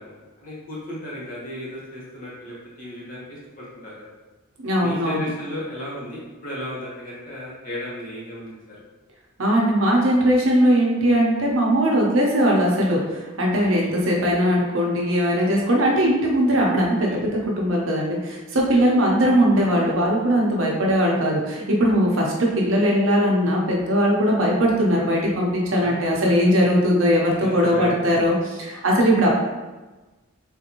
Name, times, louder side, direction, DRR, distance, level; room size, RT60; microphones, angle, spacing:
voice 1, 0.0-4.1 4.8-8.8 13.5-14.0 17.0-17.3 18.7-18.8 22.2-22.3 27.4-28.1, left 1 dB, 40° left, -7 dB, 1.1 m, -35 dB
voice 2, 4.6-5.3 9.4-17.3 17.6-29.3, equal, 70° right, -2 dB, 0.7 m, -20 dB
3.6 x 2.6 x 2.9 m, 1.2 s
head